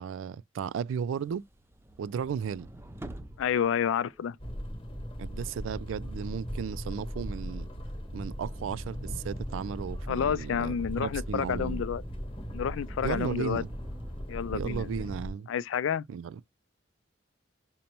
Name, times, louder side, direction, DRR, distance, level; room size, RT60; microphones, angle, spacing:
voice 1, 0.0-1.4 2.0-2.7 5.2-7.7 8.1-11.8 13.0-13.7 14.5-15.5 16.1-16.4, right 7 dB, 90° right, 0.3 m, -35 dB
sound 1, 1.1-4.7 5.0-14.2, right 1 dB, 15° right, 0.4 m, -49 dB
voice 2, 3.4-4.4 10.1-12.0 12.5-13.6 14.3-15.0 15.5-16.1, left 8 dB, 85° left, 0.3 m, -30 dB
sound 2, 4.4-15.3, equal, 30° left, 1.0 m, -38 dB
5.2 x 2.1 x 2.9 m
head